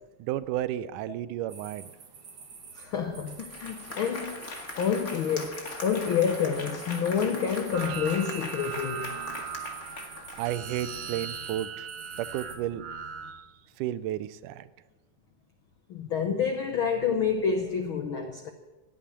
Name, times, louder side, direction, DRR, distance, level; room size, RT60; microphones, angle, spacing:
voice 1, 0.2-1.9 10.4-11.9 12.2-12.8 13.3-13.4 13.8-14.7, right 12 dB, 85° right, 2.2 m, -32 dB
sound 1, 1.5-12.6, right 5 dB, 50° right, 2.6 m, -47 dB
voice 2, 2.8-4.4 4.8-9.1 15.9-18.5, left 7 dB, 70° left, 1.2 m, -28 dB
Applause, 2.9-3.0 3.3-10.8, left 3 dB, 35° left, 1.9 m, -40 dB
sound 2, 7.7-13.3, right 7 dB, 65° right, 2.7 m, -39 dB
16.0 x 9.0 x 9.9 m
omnidirectional pair, 3.6 m